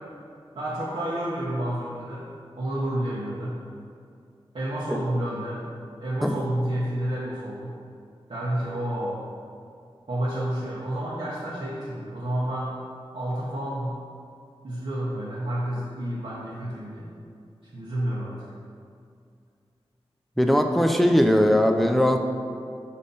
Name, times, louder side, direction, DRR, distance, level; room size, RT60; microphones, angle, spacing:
voice 1, 0.5-2.3 2.6-3.6 4.5-5.6 6.0-7.7 8.3-9.2 10.1-12.8 13.1-14.0 14.6-17.1 17.7-18.5, right 1 dB, 65° right, -8 dB, 1.0 m, -30 dB
voice 2, 20.4-22.2, equal, ahead, 5 dB, 0.4 m, -19 dB
5.0 x 4.2 x 5.5 m, 2.4 s
wide cardioid pair, 95°, 10 cm